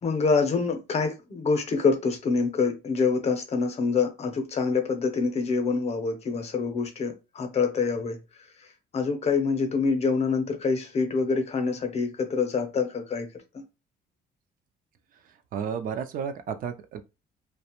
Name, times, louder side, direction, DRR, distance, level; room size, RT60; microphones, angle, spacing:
voice 1, 0.0-8.2 8.9-13.3 13.5-13.6, left 4 dB, 40° left, 0.7 m, -26 dB
voice 2, 15.1-17.0, right 7 dB, 55° right, 0.4 m, -33 dB
2.4 x 2.1 x 2.9 m
cardioid pair, 110°, 17 cm